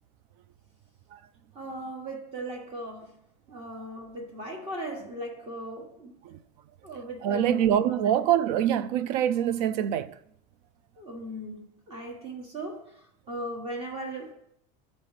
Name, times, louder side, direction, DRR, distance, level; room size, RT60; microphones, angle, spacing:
voice 1, 1.5-3.1 3.5-6.1 6.8-7.7 8.0-8.1 11.0-12.8 13.3-14.3, right 1 dB, 30° right, 1.2 m, -37 dB
voice 2, 7.2-10.2, right 10 dB, 80° right, 0.5 m, -25 dB
12.0 x 4.2 x 3.2 m
cardioid pair, 160°, 21 cm